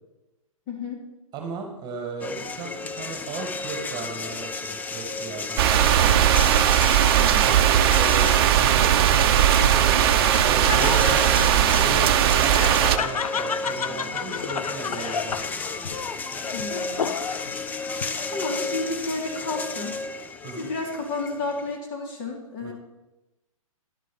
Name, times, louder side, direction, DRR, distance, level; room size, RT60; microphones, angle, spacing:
voice 1, 0.7-1.0 7.2-7.4 16.5-17.1 18.2-20.0 20.6-22.7, left 3 dB, 40° left, 1 dB, 3.0 m, -31 dB
voice 2, 1.3-6.3 7.4-9.9 10.4-11.3 11.5-15.6 20.4-20.7 22.6-22.7, right 4 dB, 25° right, 3 dB, 1.8 m, -36 dB
sound 1, 2.2-21.8, left 3 dB, 10° left, 0.4 m, -33 dB
sound 2, 5.6-13.0, right 10 dB, 45° right, 0.7 m, -19 dB
Laughter, 9.2-17.6 18.0-18.7, left 6 dB, 80° left, 0.6 m, -32 dB
11.0 x 7.6 x 5.4 m, 1.0 s
hypercardioid pair, 125°, 18 cm